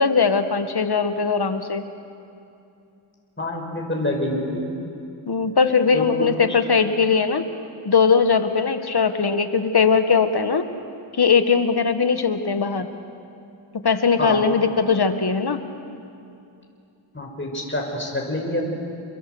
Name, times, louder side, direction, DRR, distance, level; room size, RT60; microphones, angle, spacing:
voice 1, 0.0-1.8 5.3-7.5 7.8-10.7 11.1-12.9 13.7-15.6, left 5 dB, 50° left, 8 dB, 1.9 m, -20 dB
voice 2, 3.4-4.6 5.9-6.3 14.2-14.4 17.1-18.7, left 1 dB, 25° left, 0 dB, 5.4 m, -26 dB
29.5 x 21.5 x 8.0 m, 2.6 s
cardioid pair, 60°, 49 cm